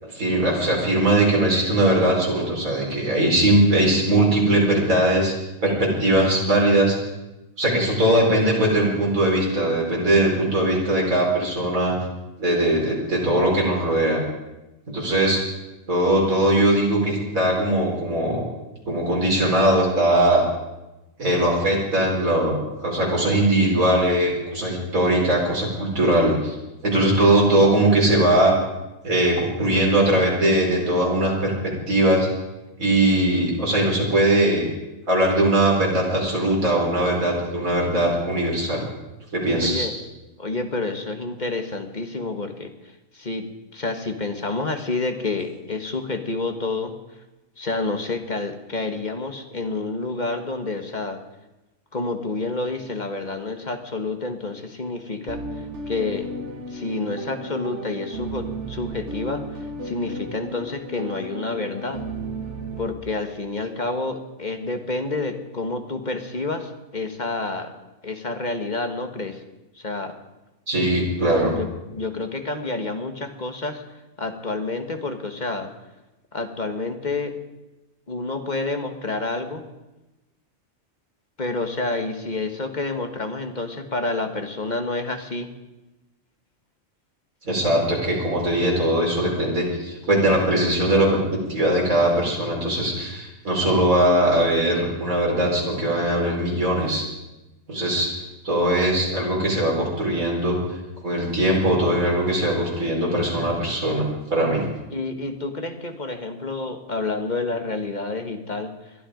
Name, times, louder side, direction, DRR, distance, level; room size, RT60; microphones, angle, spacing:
voice 1, 0.0-5.3 5.6-7.0 7.6-11.9 12.4-14.2 14.9-15.4 15.9-18.5 18.9-20.4 21.2-26.5 26.8-28.5 29.0-32.3 32.8-34.7 35.1-38.9 39.3-39.9 70.7-71.5 87.4-97.1 97.7-98.1 98.4-100.8 101.0-104.6, right 1 dB, 85° right, -2 dB, 5.1 m, -20 dB
voice 2, 39.6-39.9 40.4-42.7 43.1-47.0 47.6-51.2 51.9-56.3 56.7-62.0 62.8-67.7 68.0-69.4 69.7-70.1 71.2-73.8 74.2-75.7 76.3-77.3 78.1-79.6 81.4-85.5 104.9-108.9, left 3 dB, 35° left, 6 dB, 1.5 m, -29 dB
sound 1, 55.3-62.9, right 1 dB, 55° right, 1.7 m, -34 dB
21.5 x 12.5 x 5.1 m, 1.0 s
omnidirectional pair, 1.4 m